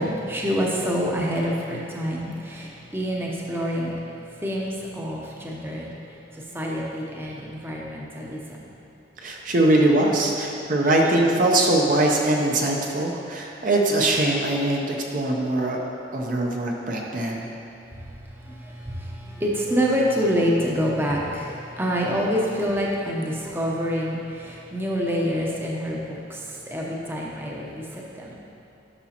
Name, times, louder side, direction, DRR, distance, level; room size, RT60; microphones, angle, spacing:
voice 1, 0.0-3.9 4.4-5.9 6.3-8.6 18.2-28.4, equal, 10° right, -3 dB, 0.7 m, -27 dB
voice 2, 9.2-15.9 16.1-17.5, right 1 dB, 45° right, 0 dB, 0.6 m, -22 dB
11.0 x 6.0 x 2.9 m, 2.8 s
head